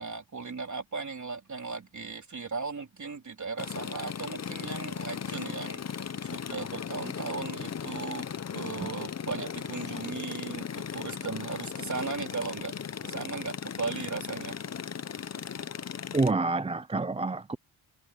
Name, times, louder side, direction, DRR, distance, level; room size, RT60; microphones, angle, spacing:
voice 1, 0.0-8.3 8.5-12.7 13.0-14.6, right 4 dB, 35° right, 3.6 m, -37 dB
sound 1, 3.6-16.3, left 7 dB, 35° left, 0.7 m, -37 dB
voice 2, 16.1-17.6, right 3 dB, 15° right, 0.3 m, -28 dB
open air
wide cardioid pair, 115°, 48 cm